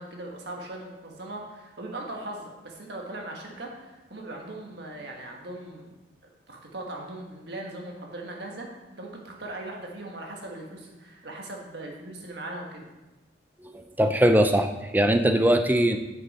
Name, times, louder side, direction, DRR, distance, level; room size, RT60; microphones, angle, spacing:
voice 1, 0.0-5.9 6.2-12.9, right 1 dB, 60° right, 0 dB, 1.5 m, -39 dB
voice 2, 13.6-16.0, right 1 dB, 10° right, 6 dB, 0.5 m, -21 dB
8.8 x 6.7 x 4.2 m, 1.1 s
head